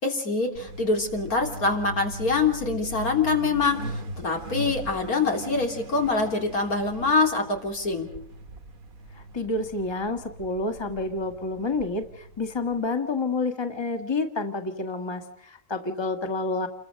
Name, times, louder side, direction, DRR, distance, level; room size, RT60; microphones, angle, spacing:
voice 1, 0.0-8.1, left 3 dB, 80° left, 2 dB, 4.0 m, -25 dB
Truck, 0.6-12.9, right 2 dB, 70° right, 1.9 m, -40 dB
voice 2, 9.1-16.7, left 3 dB, 20° left, 6 dB, 1.7 m, -29 dB
28.5 x 22.5 x 6.6 m, 0.73 s
omnidirectional pair, 1.5 m